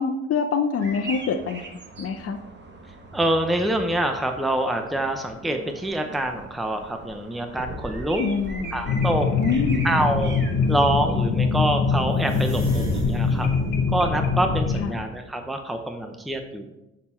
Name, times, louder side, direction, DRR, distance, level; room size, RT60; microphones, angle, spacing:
voice 1, 0.0-1.6 2.0-2.4 8.2-8.8 9.4-9.9 14.8-15.0, left 5 dB, 50° left, 5 dB, 0.6 m, -25 dB
sound 1, 0.8-10.8, right 3 dB, 35° right, 1.2 m, -41 dB
voice 2, 3.1-8.2 8.7-9.3 9.8-10.3 10.7-13.5 13.9-16.7, right 1 dB, ahead, 5 dB, 0.6 m, -25 dB
sound 2, 3.1-5.2 5.8-6.4 6.9-7.0 7.6-9.1 9.9-10.1 10.6-10.7 10.9-15.9 16.3-16.4, right 2 dB, 65° right, 2.8 m, -37 dB
sound 3, 8.8-14.8, left 4 dB, 90° left, 1.3 m, -23 dB
6.7 x 5.8 x 4.3 m, 0.97 s
cardioid pair, 90°, 30 cm